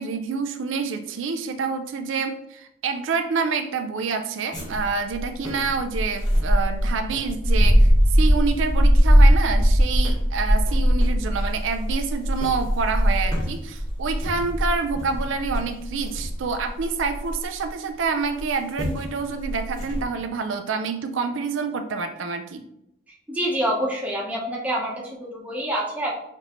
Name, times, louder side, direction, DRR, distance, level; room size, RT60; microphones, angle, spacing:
voice 1, 0.0-22.6, right 5 dB, 75° right, 8 dB, 0.4 m, -27 dB
sound 1, 4.5-17.7 18.4-18.5 18.8-19.0 19.4-20.0, equal, 20° left, 1.2 m, -20 dB
voice 2, 23.3-26.2, right 1 dB, 10° right, -3 dB, 0.8 m, -27 dB
5.8 x 2.7 x 3.0 m, 0.79 s
head